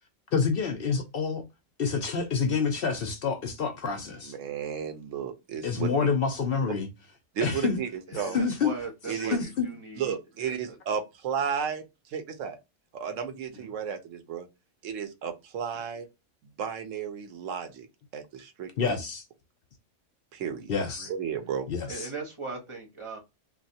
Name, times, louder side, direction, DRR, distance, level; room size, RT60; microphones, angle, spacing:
voice 1, 0.3-1.4 1.8-4.3 5.6-6.9 7.4-7.8 8.1-8.7 9.3-9.7 18.8-19.2 20.7-21.1 21.7-22.1, left 5 dB, 60° left, 0.7 m, -28 dB
voice 2, 4.0-6.1 7.3-8.4 9.1-9.4 10.0-12.6 12.9-14.5 14.8-16.1 16.6-17.9 18.1-18.7 20.3-20.7 21.1-21.7, right 7 dB, 90° right, 1.1 m, -33 dB
voice 3, 8.1-10.1 10.4-10.8 13.5-13.8 20.8-21.1 21.9-23.2, right 3 dB, 25° right, 0.9 m, -40 dB
3.1 x 2.5 x 2.7 m
omnidirectional pair, 1.3 m